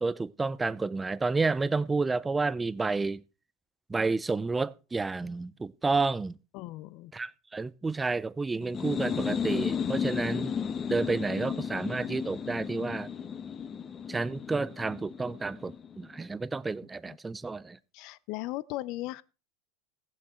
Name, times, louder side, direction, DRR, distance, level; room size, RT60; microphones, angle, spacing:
voice 1, 0.0-3.2 3.9-6.4 7.1-10.5 10.9-13.1 14.1-17.8, right 3 dB, 15° right, 0.5 m, -30 dB
voice 2, 6.5-7.1 17.1-17.2 17.9-19.2, left 18 dB, 60° left, 0.6 m, -37 dB
sound 1, 8.6-16.1, left 7 dB, 30° left, 1.0 m, -34 dB
15.5 x 7.5 x 4.3 m
hypercardioid pair, 100°, 0 cm